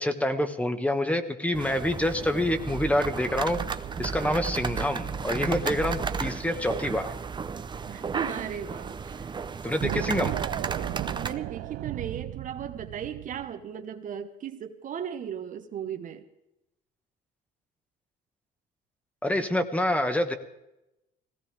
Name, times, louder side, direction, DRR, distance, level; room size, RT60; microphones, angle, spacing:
voice 1, 0.0-3.6 4.0-7.1 9.6-10.3 19.2-20.3, left 1 dB, 10° left, 9 dB, 1.5 m, -27 dB
sound 1, 1.5-11.3, right 6 dB, 25° right, 0.8 m, -33 dB
voice 2, 7.9-9.3 11.1-16.3, right 8 dB, 50° right, 7 dB, 1.2 m, -36 dB
sound 2, 9.8-13.5, right 17 dB, 85° right, 0.5 m, -35 dB
19.0 x 17.0 x 3.5 m, 0.89 s
cardioid pair, 110°, 17 cm